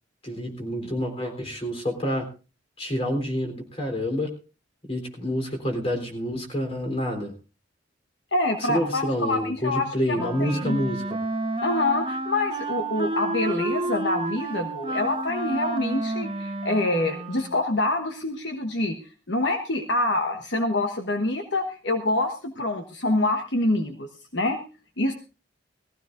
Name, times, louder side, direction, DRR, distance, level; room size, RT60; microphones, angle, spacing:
voice 1, 0.2-2.3 2.8-4.3 4.8-7.3 8.6-11.2, equal, 30° left, 3 dB, 3.6 m, -28 dB
voice 2, 8.3-10.8 11.6-19.0 19.3-24.6 25.0-25.1, left 2 dB, 65° left, 5 dB, 1.3 m, -26 dB
Wind instrument woodwind instrument, 10.1-17.7, right 2 dB, 30° right, 1.1 m, -30 dB
19.5 x 15.5 x 2.6 m, 0.32 s
head